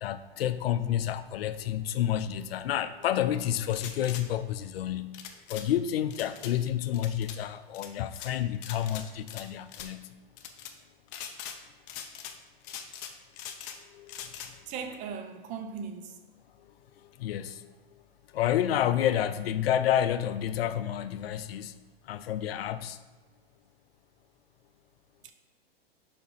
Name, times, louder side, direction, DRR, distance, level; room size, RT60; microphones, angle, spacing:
voice 1, 0.0-5.2 5.5-10.1 13.9-14.2 17.2-17.7 18.3-21.7 22.1-23.0, left 11 dB, 75° left, 0.6 m, -29 dB
sound 1, 3.7-4.2 5.1-5.7 6.1-6.5 6.9-7.4 7.7-8.3 8.6-9.4 9.7-9.9 10.4-10.7 11.1-11.6 11.9-12.4 12.6-13.8 14.1-14.5, left 9 dB, 35° left, 0.6 m, -42 dB
voice 2, 14.7-16.2 25.2-25.3, right 6 dB, 25° right, 0.4 m, -38 dB
5.2 x 4.4 x 5.4 m
hypercardioid pair, 135°, 30 cm